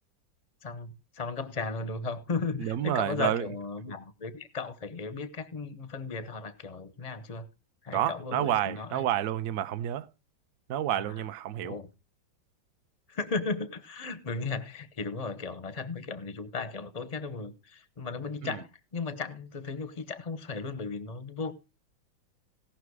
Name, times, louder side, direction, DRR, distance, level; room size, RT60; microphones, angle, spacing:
voice 1, 0.6-7.5 7.8-9.1 10.9-11.1 11.6-11.9 13.1-21.5, left 4 dB, 35° left, 0.6 m, -36 dB
voice 2, 2.6-3.5 7.9-10.1 10.7-11.8 18.4-18.6, right 11 dB, 65° right, 0.9 m, -29 dB
17.5 x 5.9 x 4.7 m
omnidirectional pair, 2.2 m